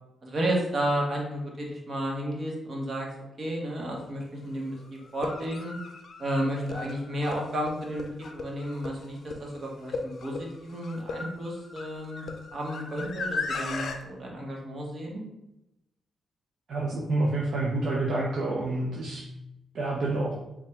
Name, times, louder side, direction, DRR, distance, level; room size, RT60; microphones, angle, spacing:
voice 1, 0.2-3.1 3.4-5.7 6.2-15.2, right 1 dB, 50° right, -2 dB, 1.1 m, -32 dB
sound 1, 3.9-4.0 5.1-14.0, left 4 dB, 60° left, 0.4 m, -37 dB
voice 2, 16.7-19.3 19.7-20.3, right 2 dB, 70° right, -3 dB, 0.6 m, -28 dB
3.4 x 2.3 x 4.3 m, 0.89 s
cardioid pair, 75°, 0 cm